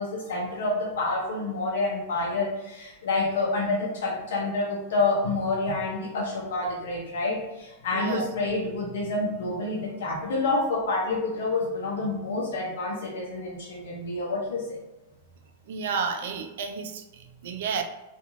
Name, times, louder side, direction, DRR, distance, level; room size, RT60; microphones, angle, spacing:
voice 1, 0.0-14.8, left 2 dB, 80° left, -3 dB, 0.6 m, -28 dB
voice 2, 7.9-8.3 15.7-17.8, right 5 dB, 60° right, 6 dB, 0.4 m, -31 dB
2.5 x 2.3 x 3.0 m, 1.0 s
supercardioid pair, 165°, 0 cm